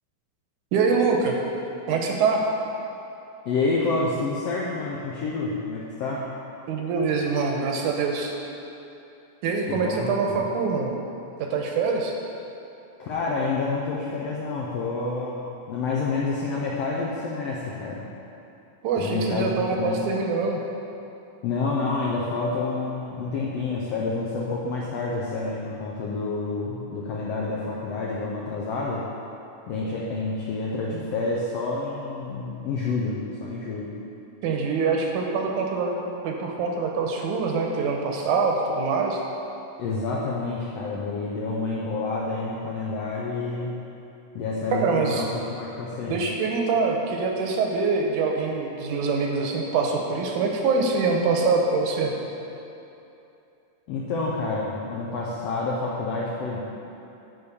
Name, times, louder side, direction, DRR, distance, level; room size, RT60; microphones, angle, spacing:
voice 1, 0.7-1.4 1.9-2.5 6.7-8.3 9.4-10.9 11.4-12.2 18.8-20.6 34.4-35.9 36.2-39.2 44.7-45.3 46.1-52.1, right 4 dB, 75° right, 1 dB, 2.1 m, -24 dB
voice 2, 3.4-6.3 9.7-10.4 13.0-18.0 19.0-20.0 21.4-29.0 29.7-33.9 39.8-43.8 44.3-46.2 53.9-56.6, left 3 dB, 80° left, -4 dB, 1.4 m, -28 dB
9.6 x 4.1 x 6.8 m, 2.8 s
omnidirectional pair, 3.8 m